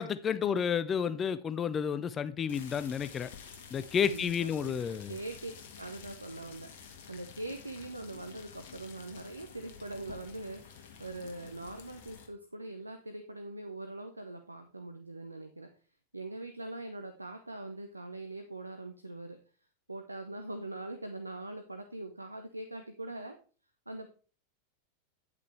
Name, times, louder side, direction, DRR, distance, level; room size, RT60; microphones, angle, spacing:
voice 1, 0.0-3.3 3.7-5.2, left 7 dB, 25° left, 15 dB, 0.4 m, -31 dB
sound 1, 2.5-12.3, left 7 dB, 55° left, 1.5 m, -50 dB
voice 2, 4.1-4.8 5.1-5.5 5.8-15.7 16.1-19.4 19.9-23.4 23.9-24.1, right 2 dB, 85° right, 7 dB, 0.7 m, -42 dB
8.8 x 8.4 x 3.2 m, 0.37 s
figure-of-eight pair, 90°, 0 cm